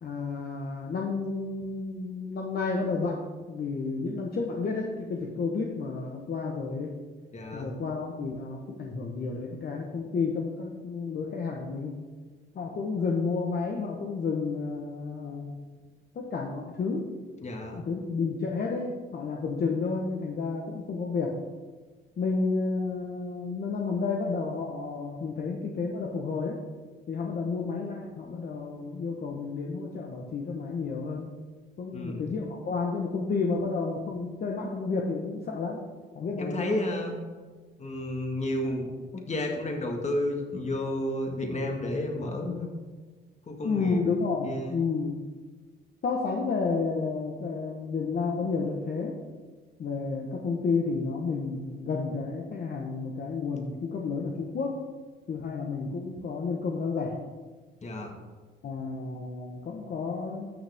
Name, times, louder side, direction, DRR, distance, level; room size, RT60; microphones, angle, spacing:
voice 1, 0.0-3.2 3.5-6.9 7.5-12.0 12.5-15.6 16.1-17.1 17.7-21.3 22.2-26.6 27.1-31.3 31.8-35.8 36.1-36.9 38.6-38.7 43.6-45.2 46.0-49.2 49.8-54.8 55.3-57.1 58.6-60.5, left 4 dB, 50° left, -1 dB, 1.2 m, -31 dB
voice 2, 7.3-7.7 17.4-17.8 31.9-32.3 36.4-37.2 37.8-38.9 39.1-42.7 43.5-44.0 44.4-44.8 57.8-58.2, left 1 dB, 35° left, 2 dB, 1.9 m, -31 dB
12.5 x 6.8 x 3.6 m, 1.4 s
cardioid pair, 90°, 20 cm